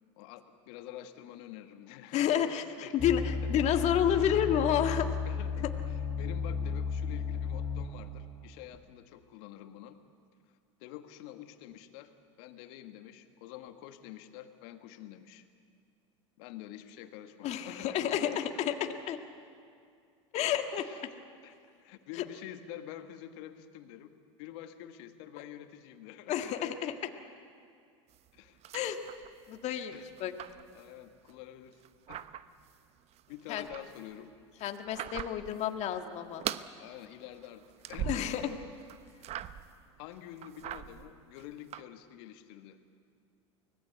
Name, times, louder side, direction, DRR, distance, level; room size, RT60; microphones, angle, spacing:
voice 1, 0.2-2.4 2.8-3.1 3.4-3.5 5.2-10.0 10.8-12.1 12.4-15.5 16.4-18.8 20.8-21.6 21.8-24.1 24.4-26.7 28.3-28.6 29.9-30.1 30.7-31.8 32.1-32.2 33.3-34.3 36.2-36.3 36.8-37.6 37.9-38.3 39.4-39.5 40.0-42.8, left 12 dB, 65° left, 8 dB, 1.7 m, -47 dB
voice 2, 2.1-5.1 17.4-19.2 20.3-20.9 26.3-26.9 28.7-29.0 29.5-30.3 33.5-33.6 34.6-36.4 38.1-38.6, left 9 dB, 45° left, 5 dB, 1.7 m, -30 dB
sound 1, 3.0-8.1 8.7-8.8, left 6 dB, 30° left, 1.0 m, -34 dB
sound 2, 28.1-29.6 29.9-31.3 31.7-32.8 33.1-35.7 35.9-36.7 37.1-38.5 38.8-39.8 40.2-41.8, right 11 dB, 40° right, 0.9 m, -41 dB
24.5 x 18.5 x 8.1 m, 2.3 s
hypercardioid pair, 90°, 16 cm